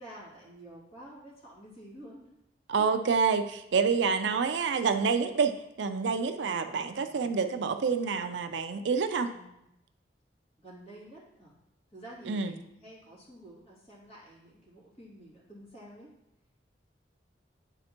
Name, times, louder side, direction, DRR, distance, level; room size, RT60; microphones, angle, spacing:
voice 1, 0.0-2.4 6.4-7.5 9.3-9.7 10.6-11.5 11.9-16.1, right 1 dB, 35° left, -6 dB, 2.3 m, -50 dB
voice 2, 2.7-5.5 5.8-9.3 12.3-12.5, right 5 dB, 65° right, 7 dB, 0.4 m, -27 dB
9.9 x 4.2 x 2.9 m, 0.84 s
head